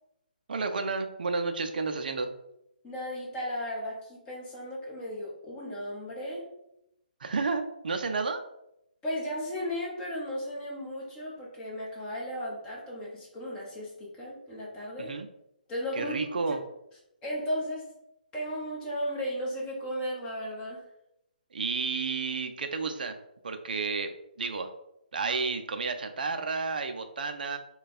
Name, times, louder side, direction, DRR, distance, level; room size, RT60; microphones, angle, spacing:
voice 1, 0.5-2.3 7.2-8.4 15.0-15.3 16.0-16.6 21.5-23.1 23.4-24.1 24.4-24.7 25.1-27.6, right 4 dB, 65° right, 6 dB, 0.4 m, -31 dB
voice 2, 2.8-6.5 9.0-15.1 15.7-16.1 17.2-17.9 18.3-20.8, equal, 15° left, -4 dB, 1.1 m, -35 dB
3.2 x 2.3 x 4.1 m, 0.82 s
hypercardioid pair, 150°, 5 cm